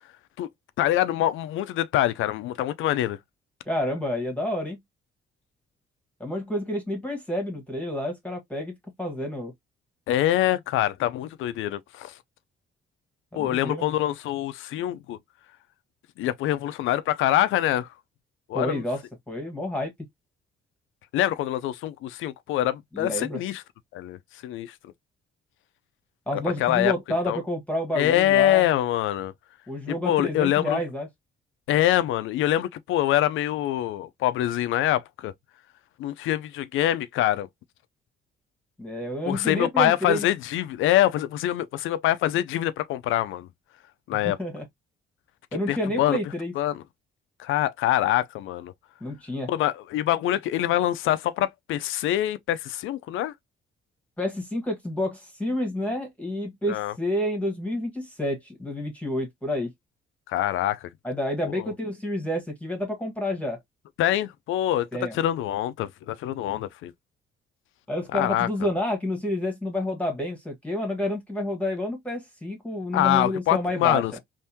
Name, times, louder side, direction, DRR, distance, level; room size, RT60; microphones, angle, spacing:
voice 1, 0.8-3.2 10.1-12.1 13.3-15.2 16.2-17.9 18.5-18.8 21.1-23.6 23.9-24.2 24.4-24.7 26.3-26.9 27.3-27.4 27.9-29.3 29.9-30.8 31.7-35.3 36.0-37.5 39.3-43.5 44.1-44.4 45.7-46.2 46.6-46.8 47.4-48.7 49.5-53.3 56.7-56.9 60.3-60.9 61.4-61.6 64.0-64.9 65.1-66.9 68.1-68.5 72.9-74.1, left 13 dB, 85° left, 0.5 m, -25 dB
voice 2, 3.7-4.8 6.2-9.5 13.3-14.0 18.5-19.9 22.9-23.4 26.3-28.6 29.7-31.1 38.8-40.2 44.2-44.6 45.5-46.5 49.0-49.5 54.2-59.7 61.0-63.6 64.9-65.2 67.9-74.0, left 1 dB, 5° left, 1.3 m, -29 dB
3.5 x 2.6 x 2.7 m
cardioid pair, 90°, 20 cm